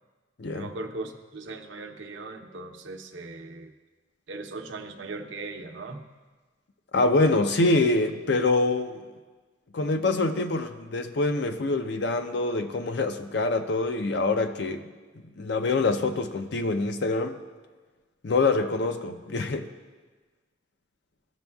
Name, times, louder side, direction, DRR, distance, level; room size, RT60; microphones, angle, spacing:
voice 1, 0.5-3.7 4.3-6.1, right 3 dB, 80° right, 4 dB, 0.7 m, -38 dB
voice 2, 6.9-9.1 9.7-14.9 15.4-17.4 18.2-19.7, left 3 dB, 60° left, 7 dB, 0.5 m, -25 dB
16.0 x 6.1 x 2.3 m, 1.4 s
head